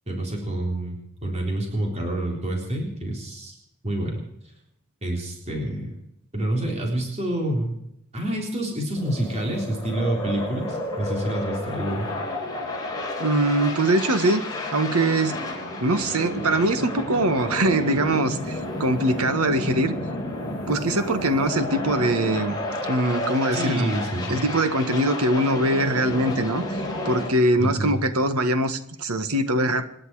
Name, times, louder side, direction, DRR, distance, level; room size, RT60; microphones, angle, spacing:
voice 1, 0.1-3.6 3.8-4.2 5.0-6.0 6.3-7.7 8.1-12.1 23.5-24.4 27.6-27.9, right 1 dB, 30° right, 0 dB, 3.8 m, -28 dB
sound 1, 9.0-27.3, left 1 dB, 20° left, 4.1 m, -31 dB
voice 2, 13.2-14.4 14.7-15.4 15.8-20.0 20.7-23.9 24.3-26.6 27.0-29.9, right 1 dB, 80° right, 10 dB, 1.5 m, -22 dB
26.5 x 11.0 x 4.9 m, 0.80 s
head